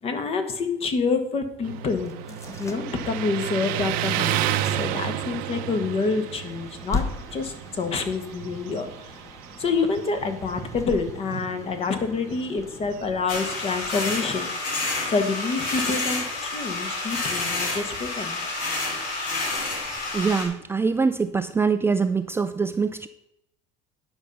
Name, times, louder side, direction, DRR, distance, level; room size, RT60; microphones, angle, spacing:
voice 1, 0.0-7.0 7.3-8.9 9.6-14.5 15.1-18.4, left 4 dB, 40° left, 7 dB, 1.5 m, -27 dB
Motorcycle, 1.6-14.3, right 12 dB, 70° right, 0.7 m, -32 dB
sound 1, 2.0-14.9, left 4 dB, 20° left, 1.0 m, -39 dB
sound 2, 13.3-20.5, left 2 dB, 70° left, 3.0 m, -29 dB
voice 2, 20.1-23.1, right 5 dB, 15° right, 10 dB, 0.4 m, -24 dB
10.5 x 5.8 x 5.4 m, 0.82 s
supercardioid pair, 115°, 15 cm